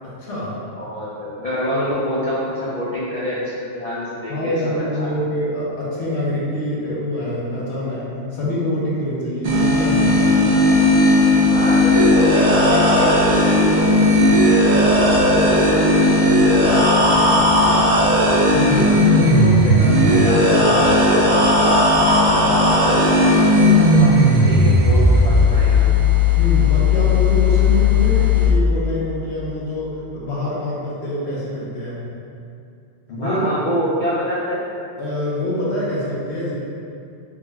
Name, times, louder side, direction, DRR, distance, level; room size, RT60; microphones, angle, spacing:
voice 1, 0.0-0.6 1.7-1.9 4.3-10.4 18.5-19.0 26.4-32.0 33.1-33.6 35.0-36.5, left 1 dB, 70° left, -6 dB, 1.0 m, -25 dB
voice 2, 0.7-5.1 11.5-13.1 13.5-18.1 18.8-24.1 24.4-25.8 33.2-34.7, equal, 50° left, -9 dB, 0.5 m, -27 dB
sound 1, 9.4-28.5, left 1 dB, 60° right, 0.6 m, -15 dB
3.5 x 2.1 x 3.3 m, 2.5 s
omnidirectional pair, 1.2 m